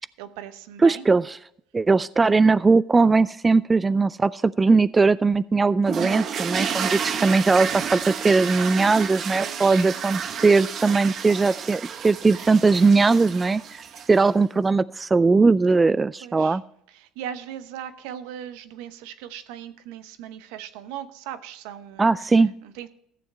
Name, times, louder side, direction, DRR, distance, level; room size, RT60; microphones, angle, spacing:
voice 1, 0.2-1.0 9.4-9.8 13.9-14.1 16.2-16.6 16.9-22.9, right 10 dB, 80° right, 11 dB, 0.9 m, -39 dB
voice 2, 0.8-1.2 1.7-13.8 14.1-16.6 22.0-22.5, right 4 dB, 20° right, 17 dB, 0.3 m, -19 dB
sound 1, 5.8-14.3, right 7 dB, 50° right, 1.0 m, -31 dB
14.5 x 7.2 x 4.5 m, 0.72 s
supercardioid pair, 80°, 0 cm